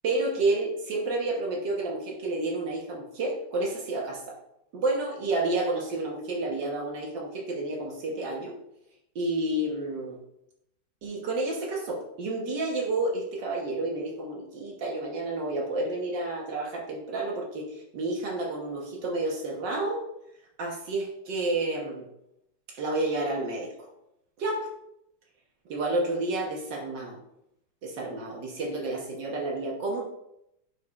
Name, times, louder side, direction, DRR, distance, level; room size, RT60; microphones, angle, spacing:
voice 1, 0.0-4.4 4.7-8.5 9.1-10.2 11.0-20.0 20.6-22.1 22.7-23.9 24.4-24.7 25.7-27.2 27.8-30.0, right 2 dB, 70° right, -1 dB, 1.7 m, -30 dB
11.0 x 4.8 x 2.4 m, 0.80 s
omnidirectional pair, 2.0 m